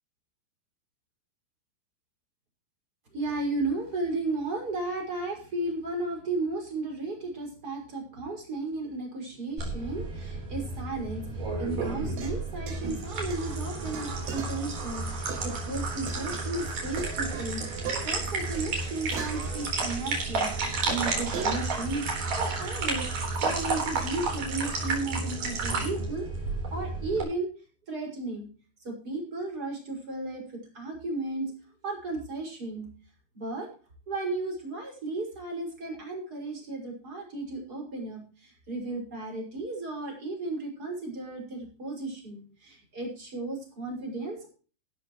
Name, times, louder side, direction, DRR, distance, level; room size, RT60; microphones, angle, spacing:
voice 1, 3.1-23.1 23.4-26.3 26.7-27.5 27.9-28.5 28.8-31.5 31.8-32.9 33.3-33.7 34.1-44.5, right 2 dB, 20° right, 0 dB, 6.2 m, -34 dB
sound 1, 9.6-27.2, right 3 dB, 50° right, 5.3 m, -32 dB
sound 2, 12.1-16.7 17.0-20.2 20.9-21.6, right 5 dB, 80° right, 5.4 m, -40 dB
15.5 x 13.0 x 3.1 m, 0.37 s
omnidirectional pair, 4.9 m